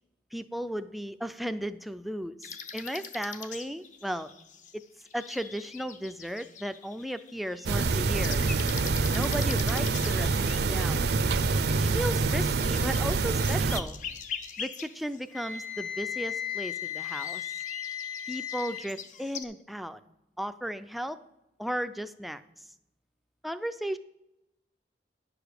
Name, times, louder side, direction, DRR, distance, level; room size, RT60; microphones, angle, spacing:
voice 1, 0.3-4.3 4.7-4.8 5.1-8.4 9.1-11.1 11.7-14.0 14.6-17.5 18.3-20.0 20.4-21.2 21.6-22.7 23.4-24.0, equal, ahead, 11 dB, 0.3 m, -35 dB
sound 1, 2.4-15.6 16.4-19.4, left 7 dB, 45° left, 0.6 m, -43 dB
sound 2, 7.7-13.8, right 4 dB, 65° right, 0.5 m, -26 dB
Wind instrument woodwind instrument, 15.3-18.8, left 9 dB, 90° left, 2.4 m, -35 dB
10.0 x 4.9 x 6.5 m, 0.91 s
head